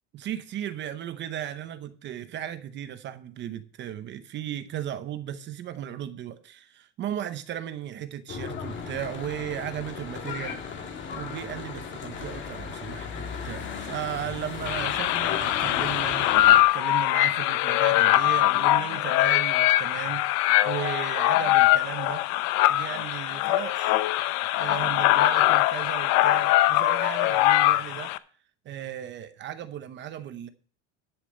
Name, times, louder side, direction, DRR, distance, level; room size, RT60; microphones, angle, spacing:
voice 1, 0.1-10.7 11.1-16.3 16.7-20.3 20.6-22.2 22.7-24.0 24.6-28.1 28.6-30.5, right 11 dB, 30° right, 0.7 m, -36 dB
Church bell / Traffic noise roadway noise, 8.3-16.6, left 6 dB, 35° left, 1.8 m, -36 dB
sound 1, 14.7-28.2, left 16 dB, 55° left, 0.7 m, -22 dB
11.0 x 6.9 x 5.2 m
cardioid pair, 155°, 35 cm